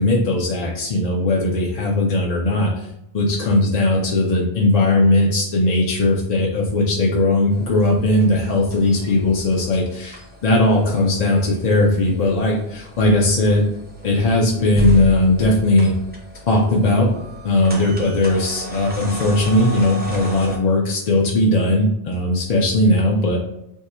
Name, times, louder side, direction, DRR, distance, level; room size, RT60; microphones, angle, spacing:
voice 1, 0.0-2.9 3.1-13.6 14.0-15.9 16.5-17.1 17.4-23.4, left 2 dB, 50° left, -3 dB, 0.5 m, -18 dB
sound 1, 7.5-20.6, equal, 15° right, 0.4 m, -34 dB
2.7 x 2.4 x 4.2 m, 0.81 s
omnidirectional pair, 1.1 m